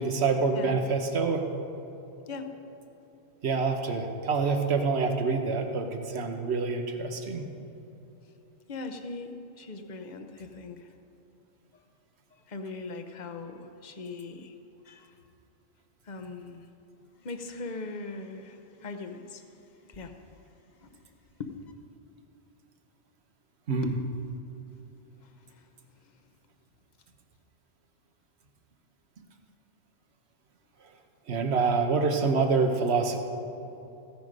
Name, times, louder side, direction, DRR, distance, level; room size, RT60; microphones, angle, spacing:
voice 1, 0.0-1.5 3.4-7.5 23.7-23.9 29.2-29.3 31.3-33.2, right 4 dB, 70° right, 5 dB, 1.3 m, -26 dB
voice 2, 8.7-10.9 12.5-14.5 14.8-15.1 16.0-16.7 17.2-20.2 20.8-20.9 21.4-21.5 23.8-24.1 25.2-25.7, left 3 dB, 45° left, 7 dB, 1.0 m, -40 dB
15.5 x 9.8 x 5.3 m, 3.0 s
omnidirectional pair, 1.2 m